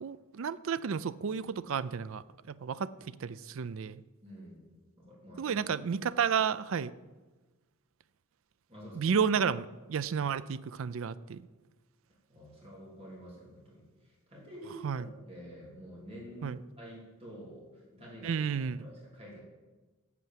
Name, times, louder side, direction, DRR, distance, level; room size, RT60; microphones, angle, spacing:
voice 1, 0.0-4.0 5.4-6.9 8.9-11.4 14.8-15.0 16.4-16.6 18.2-18.9, right 6 dB, 65° right, 16 dB, 0.4 m, -32 dB
voice 2, 4.2-4.6 5.0-5.6 8.7-9.1 12.3-19.4, equal, 25° right, -4 dB, 3.2 m, -49 dB
8.4 x 7.8 x 7.4 m, 1.2 s
head